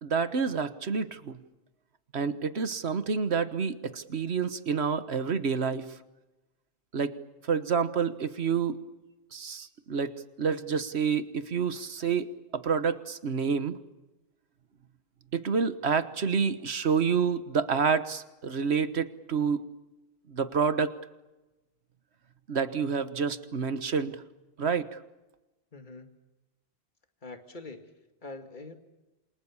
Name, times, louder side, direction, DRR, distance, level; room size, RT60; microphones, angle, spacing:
voice 1, 0.0-1.4 2.1-5.9 6.9-7.1 7.4-8.8 9.3-10.1 10.4-12.3 12.5-13.8 15.3-19.7 20.3-20.9 22.5-24.2 24.6-25.0, right 6 dB, 85° right, 12 dB, 1.6 m, -28 dB
voice 2, 25.7-26.2 27.2-27.9 28.2-28.8, left 3 dB, 50° left, 6 dB, 2.4 m, -44 dB
28.0 x 26.5 x 7.2 m, 1.1 s
omnidirectional pair, 1.1 m